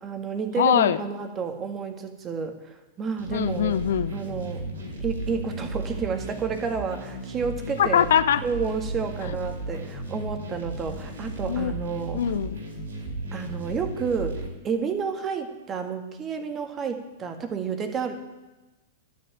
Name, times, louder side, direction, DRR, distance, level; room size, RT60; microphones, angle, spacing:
voice 1, 0.0-3.7 4.1-4.6 5.0-8.1 8.4-12.2 13.3-18.2, right 5 dB, 25° right, 6 dB, 1.9 m, -30 dB
voice 2, 0.6-1.0 3.3-4.2 7.8-8.4 11.4-11.7 12.1-12.6, left 9 dB, 70° left, 14 dB, 0.6 m, -22 dB
sound 1, 3.2-14.5, right 2 dB, 75° right, 4.7 m, -35 dB
12.0 x 7.4 x 8.9 m, 1.1 s
hypercardioid pair, 105°, 0 cm